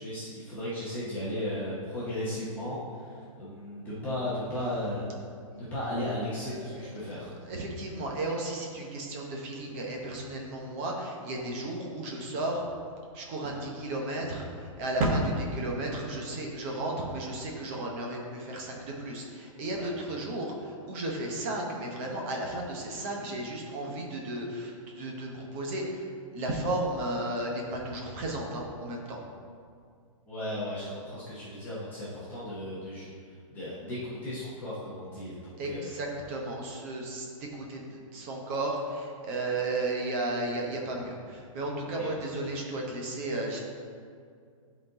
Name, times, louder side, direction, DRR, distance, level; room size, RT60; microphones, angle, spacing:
voice 1, 0.0-5.0 5.5-7.3 19.7-19.9 30.3-35.9 42.0-42.1, left 1 dB, 10° left, -10 dB, 0.9 m, -35 dB
voice 2, 6.5-6.8 7.2-12.6 13.1-29.2 35.6-43.6, right 2 dB, 20° right, -1 dB, 0.8 m, -34 dB
10.5 x 4.0 x 3.9 m, 2.2 s
hypercardioid pair, 175°, 18 cm